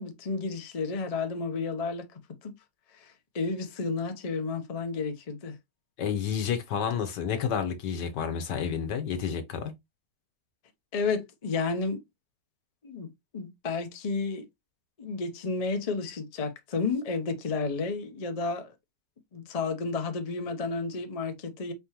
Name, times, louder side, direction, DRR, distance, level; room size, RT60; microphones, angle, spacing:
voice 1, 0.0-2.0 2.4-2.5 3.0-5.6 10.9-12.0 12.8-14.5 15.0-18.7 19.3-21.7, left 4 dB, 55° left, 0.4 m, -31 dB
voice 2, 6.0-9.7, left 7 dB, 80° left, 1.5 m, -30 dB
4.3 x 3.8 x 2.9 m
omnidirectional pair, 1.8 m